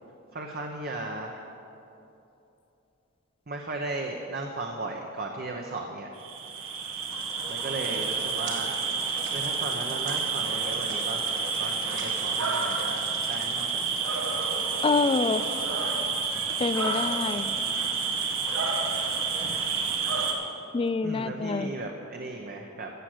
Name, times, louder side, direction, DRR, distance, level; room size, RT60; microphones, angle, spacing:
voice 1, 0.3-1.5 3.5-6.1 7.5-8.7 9.3-11.3 11.6-14.1 21.0-22.9, right 2 dB, 50° right, 2 dB, 1.0 m, -36 dB
sound 1, 6.2-20.3, right 5 dB, 85° right, 1.8 m, -29 dB
sound 2, 8.5-8.9 9.2-9.7 10.1-10.5 10.9-11.6 12.0-12.6, right 4 dB, 65° right, 2.3 m, -44 dB
voice 2, 14.8-15.4 16.6-17.5 20.7-21.7, left 4 dB, 25° left, 13 dB, 0.3 m, -26 dB
15.0 x 7.6 x 7.9 m, 2.9 s
head